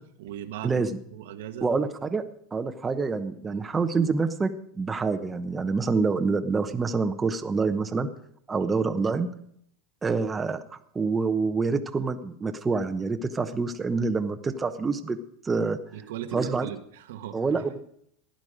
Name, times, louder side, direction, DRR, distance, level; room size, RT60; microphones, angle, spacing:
voice 1, 0.0-0.8 1.1-1.7 3.5-3.6 8.6-8.7 15.9-17.4, right 11 dB, 80° right, 7 dB, 1.3 m, -38 dB
voice 2, 0.6-1.0 1.6-2.2 2.5-8.1 8.5-9.3 10.0-15.2 15.4-15.8 16.3-16.7 17.3-17.8, right 4 dB, 15° right, 7 dB, 0.9 m, -27 dB
15.5 x 10.5 x 5.1 m, 0.68 s
supercardioid pair, 130°, 0 cm